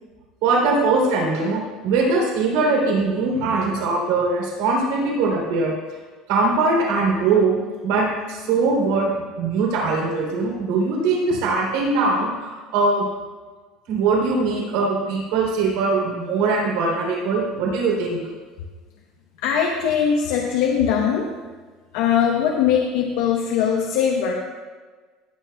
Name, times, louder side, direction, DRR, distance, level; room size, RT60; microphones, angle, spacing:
voice 1, 0.4-5.7 6.3-7.5 7.8-13.0 13.9-18.2, right 3 dB, 80° right, -2 dB, 3.3 m, -21 dB
voice 2, 19.4-21.3 21.9-24.3, left 8 dB, 80° left, 0 dB, 0.9 m, -21 dB
17.0 x 9.2 x 2.3 m, 1.4 s
cardioid pair, 160°, 0 cm